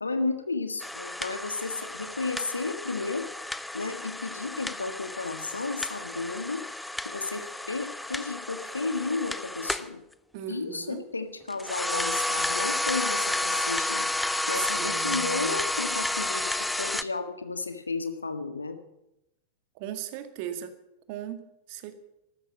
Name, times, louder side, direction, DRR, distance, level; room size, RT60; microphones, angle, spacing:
voice 1, 0.0-3.3 3.7-6.6 7.1-10.0 10.5-14.1 14.5-18.8, left 3 dB, 80° left, 8 dB, 1.7 m, -33 dB
sound 1, 0.8-9.9 11.5-17.0, left 1 dB, 5° left, 0.7 m, -31 dB
voice 2, 10.3-11.0 14.6-15.6 19.8-20.7 21.1-22.0, right 11 dB, 45° right, 9 dB, 1.9 m, -38 dB
14.0 x 13.0 x 7.4 m, 0.85 s
figure-of-eight pair, 90°, 0 cm